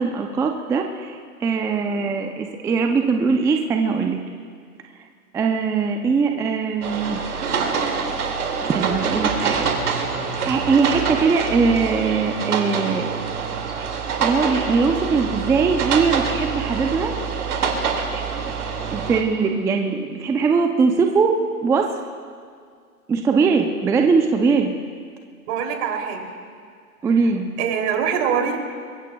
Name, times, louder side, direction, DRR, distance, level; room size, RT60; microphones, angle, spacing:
voice 1, 0.0-4.2 5.3-7.2 8.6-9.7 10.0-10.1 10.5-13.1 14.2-17.1 18.9-21.9 23.1-24.7 27.0-27.5, right 5 dB, 5° right, 4 dB, 0.4 m, -21 dB
sound 1, 6.8-19.2, right 5 dB, 75° right, 2.3 m, -25 dB
voice 2, 25.5-26.2 27.6-28.6, right 7 dB, 50° right, 2 dB, 3.0 m, -23 dB
24.0 x 22.0 x 2.3 m, 2.1 s
hypercardioid pair, 110°, 45 cm